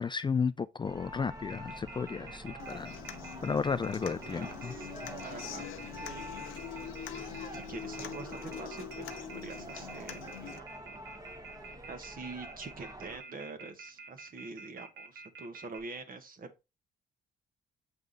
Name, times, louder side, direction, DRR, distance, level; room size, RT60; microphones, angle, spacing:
voice 1, 0.0-3.0 3.4-4.8, left 5 dB, 25° left, 0.3 m, -33 dB
sound 1, 0.8-13.2, right 1 dB, 20° right, 1.3 m, -46 dB
Telephone, 1.5-15.8, right 3 dB, 60° right, 1.0 m, -48 dB
Human voice / Acoustic guitar, 2.6-10.6, left 10 dB, 90° left, 0.8 m, -44 dB
voice 2, 4.2-4.9 5.2-6.6 7.5-11.0 11.6-16.6, right 3 dB, 45° right, 1.4 m, -46 dB
7.7 x 3.5 x 4.0 m
cardioid pair, 90°, 20 cm